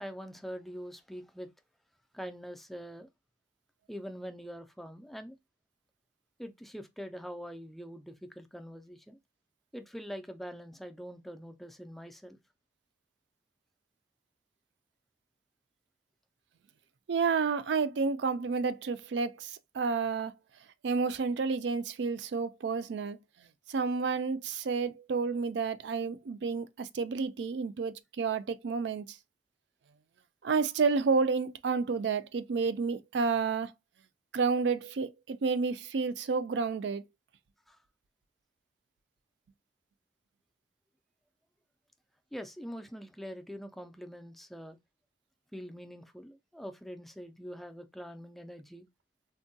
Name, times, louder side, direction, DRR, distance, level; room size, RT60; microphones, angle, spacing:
voice 1, 0.0-1.5 2.1-3.1 3.9-5.4 6.4-9.2 9.7-12.4 37.7-37.8 42.3-44.8 45.5-48.8, equal, ahead, 0.3 m, -44 dB
voice 2, 17.1-20.3 20.8-23.2 23.7-29.2 30.4-33.7 34.3-37.0, right 4 dB, 75° right, 0.4 m, -30 dB
3.5 x 2.2 x 2.6 m
head